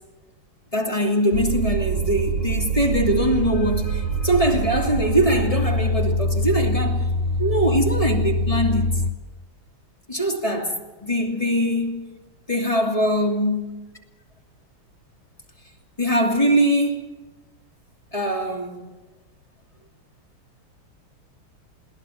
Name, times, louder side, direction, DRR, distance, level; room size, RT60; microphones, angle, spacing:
voice 1, 0.7-7.1 7.4-9.0 10.1-12.1 12.5-13.7 16.0-17.1 18.1-18.9, equal, 15° left, 2.7 m, -22 dB
sound 1, 1.3-9.1, right 1 dB, 75° right, 1.8 m, -24 dB
21.5 x 19.0 x 7.3 m
omnidirectional pair, 2.3 m